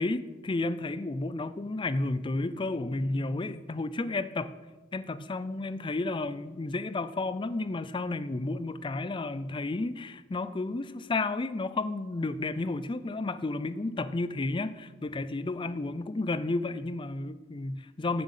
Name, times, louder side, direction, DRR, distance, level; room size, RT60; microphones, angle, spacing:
voice 1, 0.0-4.5 4.9-18.2, left 2 dB, 25° left, 14 dB, 0.4 m, -32 dB
7.6 x 7.0 x 8.2 m, 1.2 s
head